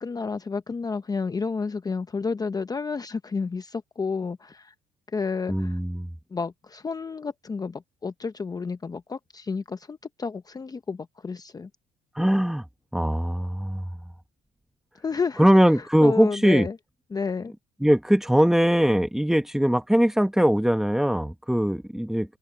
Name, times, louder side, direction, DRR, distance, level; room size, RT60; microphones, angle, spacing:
voice 1, 0.0-4.7 5.1-5.8 6.3-11.7 15.0-16.8 17.1-17.5, left 4 dB, 20° left, 0.7 m, -31 dB
voice 2, 5.5-6.1 12.1-12.6 12.9-13.9 15.4-16.7 17.8-22.4, equal, 5° right, 1.0 m, -21 dB
cardioid pair, 110°, 17 cm